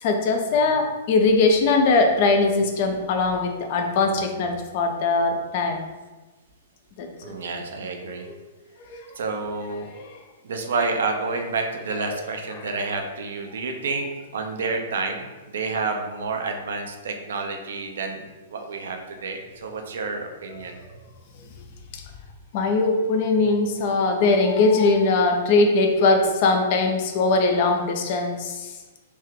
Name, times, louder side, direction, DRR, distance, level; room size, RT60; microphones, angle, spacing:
voice 1, 0.0-5.9 7.0-7.3 8.2-8.3 10.0-10.1 22.5-28.7, left 3 dB, 45° left, 4 dB, 0.5 m, -21 dB
voice 2, 7.2-8.3 9.2-9.9 10.4-20.8, right 3 dB, 65° right, 4 dB, 0.5 m, -29 dB
3.3 x 2.7 x 3.4 m, 1.2 s
figure-of-eight pair, 110°, 0 cm